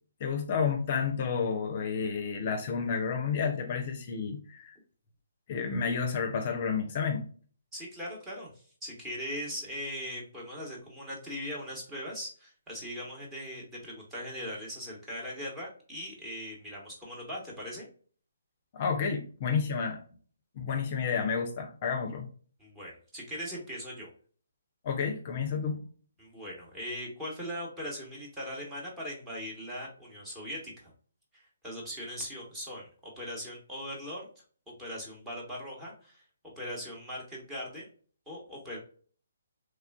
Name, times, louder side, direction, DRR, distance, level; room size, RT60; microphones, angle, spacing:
voice 1, 0.2-4.8 5.5-7.2 18.7-20.0 20.5-22.3 24.8-25.8, left 6 dB, 40° left, 4 dB, 0.5 m, -30 dB
voice 2, 7.7-17.8 22.6-24.1 26.2-30.9 31.3-34.3 34.8-37.9 38.3-38.8, equal, 10° right, -3 dB, 1.1 m, -40 dB
3.2 x 2.4 x 2.3 m, 0.43 s
figure-of-eight pair, 140°, 0 cm